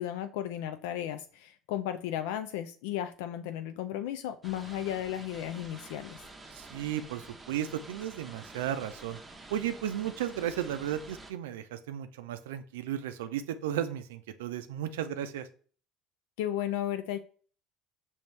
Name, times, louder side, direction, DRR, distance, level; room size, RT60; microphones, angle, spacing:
voice 1, 0.0-6.2 16.4-17.2, left 11 dB, 75° left, 9 dB, 0.3 m, -34 dB
sound 1, 4.4-11.3, right 2 dB, 15° right, 0.8 m, -49 dB
voice 2, 6.5-9.2 9.5-15.5, right 10 dB, 80° right, 10 dB, 0.4 m, -34 dB
5.2 x 2.7 x 3.2 m, 0.43 s
hypercardioid pair, 75°, 0 cm